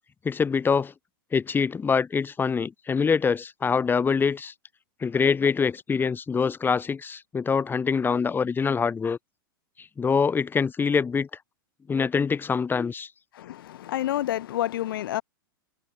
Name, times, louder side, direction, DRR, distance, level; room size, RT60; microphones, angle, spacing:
voice 1, 0.3-0.9 1.3-4.5 5.0-9.2 10.0-11.3 11.9-13.1, left 5 dB, 15° left, 3.7 m, -24 dB
voice 2, 13.4-15.2, left 13 dB, 70° left, 2.9 m, -29 dB
hypercardioid pair, 115°, 12 cm